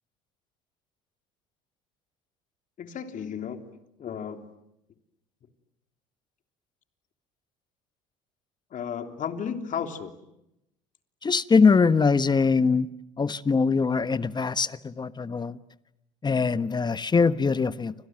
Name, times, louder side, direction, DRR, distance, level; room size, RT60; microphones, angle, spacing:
voice 1, 2.8-3.6 4.0-4.5 8.7-10.2, left 7 dB, 50° left, 3.3 m, -33 dB
voice 2, 11.2-12.9 13.2-15.6 16.2-17.9, left 5 dB, 25° left, 1.3 m, -22 dB
29.5 x 26.0 x 7.6 m
hypercardioid pair, 70°, 17 cm